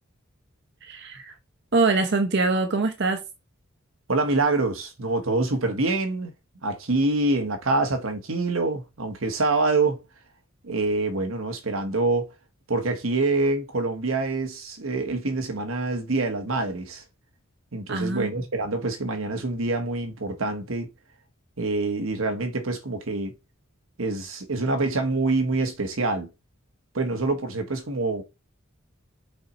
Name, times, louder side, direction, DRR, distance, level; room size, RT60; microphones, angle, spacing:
voice 1, 0.8-1.4 1.7-3.2 17.9-18.3, right 3 dB, 55° right, 0.8 m, -23 dB
voice 2, 4.1-6.3 6.6-10.0 10.6-12.3 12.7-17.0 17.7-20.9 21.6-23.3 24.0-26.3 26.9-28.2, right 3 dB, 80° right, 1.2 m, -26 dB
5.4 x 4.3 x 4.3 m
head